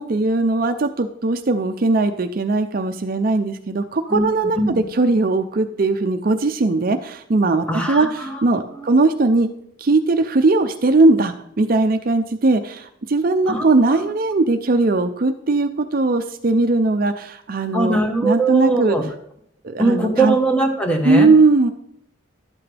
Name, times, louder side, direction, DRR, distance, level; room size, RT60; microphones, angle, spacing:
voice 1, 0.0-9.5 9.8-19.0 19.6-20.3 21.0-21.7, right 3 dB, 45° right, 7 dB, 0.5 m, -19 dB
voice 2, 7.7-8.4 8.7-8.9 13.5-13.7 13.9-14.1 17.7-19.0 19.8-21.3, right 2 dB, 5° left, 3 dB, 1.3 m, -21 dB
12.0 x 8.3 x 3.4 m, 0.70 s
head